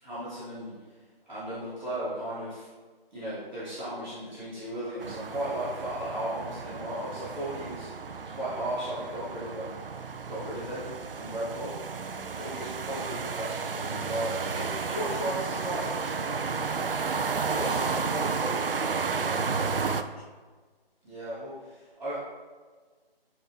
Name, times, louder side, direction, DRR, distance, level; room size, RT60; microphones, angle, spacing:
voice 1, 0.0-0.8 1.2-2.7 3.1-9.8 10.3-10.8 11.1-11.7 12.3-16.9 21.0-22.2, right 1 dB, ahead, -24 dB, 2.0 m, -36 dB
sound 1, 5.0-20.0, right 5 dB, 65° right, 0.5 m, -32 dB
voice 2, 17.5-20.3, left 1 dB, 90° left, 1 dB, 1.6 m, -40 dB
9.6 x 4.3 x 3.9 m, 1.4 s
figure-of-eight pair, 170°, 30 cm